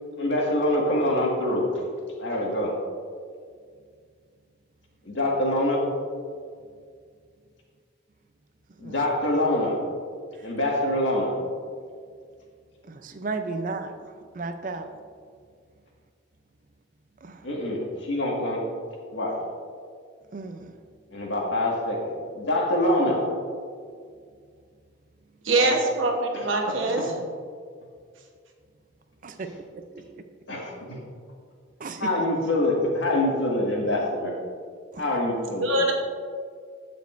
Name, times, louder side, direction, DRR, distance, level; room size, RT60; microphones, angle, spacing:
voice 1, 0.2-1.7 2.2-2.8 5.0-5.9 8.8-9.8 10.4-11.4 17.4-18.6 19.1-19.4 21.1-23.3 25.6-25.7 26.3-27.0 30.5-31.0 32.0-34.4 35.0-35.7, left 1 dB, 70° left, -2 dB, 1.8 m, -25 dB
voice 2, 12.9-13.9 14.3-14.9 17.2-17.4 20.3-20.7 29.2-29.5 31.8-32.0 34.9-35.0, right 3 dB, 40° right, 7 dB, 0.5 m, -33 dB
voice 3, 25.4-27.1 35.5-35.9, right 2 dB, 80° right, 1 dB, 1.1 m, -23 dB
14.5 x 5.2 x 2.6 m, 2.1 s
head